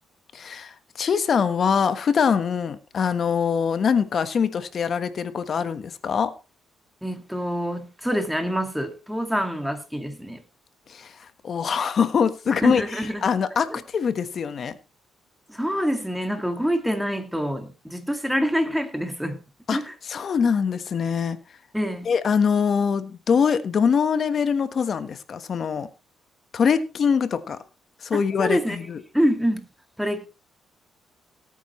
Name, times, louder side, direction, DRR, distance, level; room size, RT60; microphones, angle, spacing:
voice 1, 0.3-6.3 10.9-12.8 13.2-14.7 19.7-19.8 20.1-21.4 22.0-25.9 26.5-27.6 28.0-29.0, left 6 dB, 50° left, 1.3 m, -23 dB
voice 2, 7.0-10.4 12.6-13.2 13.7-13.8 15.5-19.4 19.7-19.9 21.7-22.1 28.1-28.8 29.1-29.7 30.0-30.3, equal, ahead, 2.2 m, -26 dB
18.5 x 9.2 x 3.2 m
cardioid pair, 90°, 0 cm